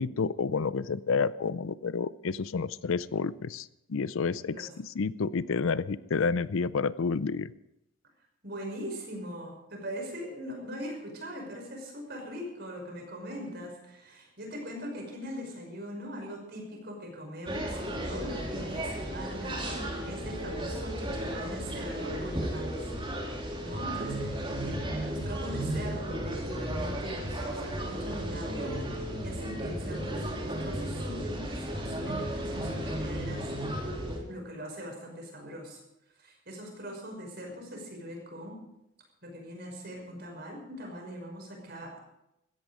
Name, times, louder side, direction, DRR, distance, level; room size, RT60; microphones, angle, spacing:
voice 1, 0.0-7.5, left 5 dB, 75° left, 17 dB, 0.5 m, -30 dB
voice 2, 8.4-22.9 23.6-28.7 29.2-33.5 34.3-35.8 36.2-38.6 39.2-42.0, equal, 50° right, 1 dB, 5.6 m, -41 dB
sound 1, 17.5-34.2, right 1 dB, 25° right, 3.4 m, -34 dB
17.0 x 13.5 x 5.0 m, 0.86 s
head